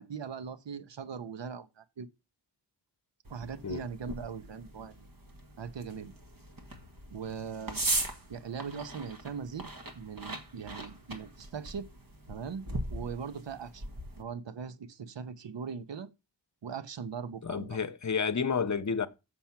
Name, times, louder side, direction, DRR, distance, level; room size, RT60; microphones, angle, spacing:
voice 1, 0.0-2.1 3.3-5.1 5.6-6.1 7.1-7.8 8.3-9.7 9.9-11.9 12.3-13.8 14.2-16.1 16.6-17.8, right 6 dB, 80° right, 0.8 m, -40 dB
sound 1, 3.3-14.2, right 2 dB, 50° right, 1.5 m, -39 dB
voice 2, 17.4-19.1, left 6 dB, 40° left, 0.8 m, -30 dB
7.1 x 5.6 x 5.8 m
wide cardioid pair, 80°, 43 cm